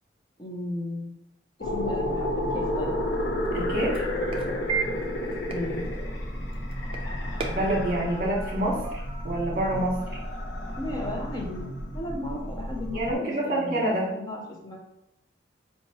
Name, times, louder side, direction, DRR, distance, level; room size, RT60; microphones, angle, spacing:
voice 1, 0.4-1.2 1.6-2.9 5.5-5.9 10.8-14.8, left 1 dB, 20° left, 0 dB, 0.5 m, -35 dB
sound 1, 1.6-13.1, left 1 dB, 70° left, 0.8 m, -31 dB
sound 2, 2.5-10.4, right 5 dB, 30° right, 0.5 m, -38 dB
voice 2, 3.5-4.0 7.5-10.0 12.9-14.1, right 1 dB, 45° right, -3 dB, 1.1 m, -27 dB
4.4 x 2.9 x 2.9 m, 0.86 s
head